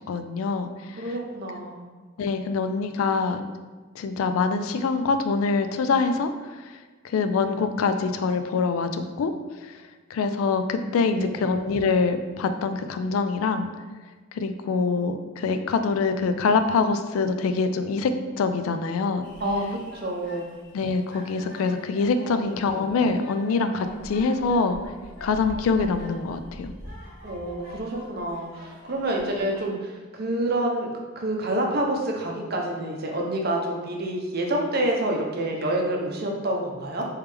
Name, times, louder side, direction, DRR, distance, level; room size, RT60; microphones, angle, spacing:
voice 1, 0.1-1.1 2.2-3.4 4.0-6.8 7.0-9.3 9.6-9.8 10.1-13.7 14.3-18.1 18.4-19.2 20.7-24.8 25.2-26.7, left 4 dB, 80° left, 8 dB, 0.3 m, -25 dB
voice 2, 1.0-1.8 11.2-11.3 19.4-20.5 22.3-22.4 22.7-22.8 27.2-30.9 31.2-37.1, right 1 dB, 45° right, 0 dB, 0.6 m, -28 dB
sound 1, 19.2-29.7, left 1 dB, 45° left, 1.1 m, -44 dB
3.3 x 3.1 x 3.3 m, 1.3 s
head